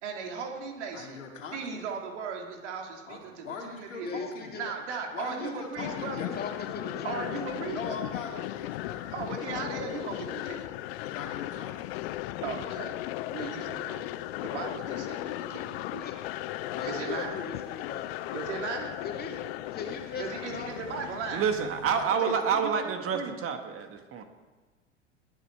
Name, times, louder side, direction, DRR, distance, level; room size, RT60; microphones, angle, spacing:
voice 1, 0.0-1.2 1.5-4.2 4.5-6.3 7.0-7.8 9.1-10.7 12.4-13.0 13.3-14.1 14.4-16.1 16.8-17.4 18.3-19.0 20.2-21.5 22.2-23.4, right 5 dB, 65° right, 2 dB, 3.2 m, -37 dB
voice 2, 0.9-1.8 3.1-4.6 5.1-6.5 7.7-9.1 11.0-12.1 16.6-17.3 21.9-22.8, left 5 dB, 75° left, 1 dB, 2.7 m, -41 dB
voice 3, 4.0-4.7 5.4-5.5 6.1-7.3 7.6-8.3 13.7-13.8 16.0-16.1 16.7-18.1 19.0-19.4 19.7-21.2, left 5 dB, 25° left, 2 dB, 2.7 m, -40 dB
sound 1, 5.8-22.1, left 15 dB, 50° left, 0.7 m, -37 dB
voice 4, 21.3-24.2, right 6 dB, 35° right, 6 dB, 1.9 m, -28 dB
21.0 x 10.5 x 4.8 m, 1.3 s
figure-of-eight pair, 90°, 38 cm